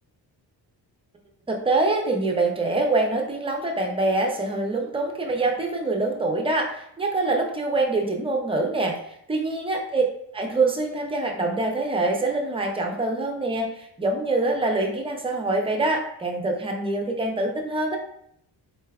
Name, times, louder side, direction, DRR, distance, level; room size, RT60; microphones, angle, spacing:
voice 1, 1.5-9.0 9.3-10.0 10.3-18.0, right 2 dB, 15° right, 1 dB, 0.3 m, -25 dB
4.0 x 3.3 x 2.2 m, 0.71 s
wide cardioid pair, 175°, 42 cm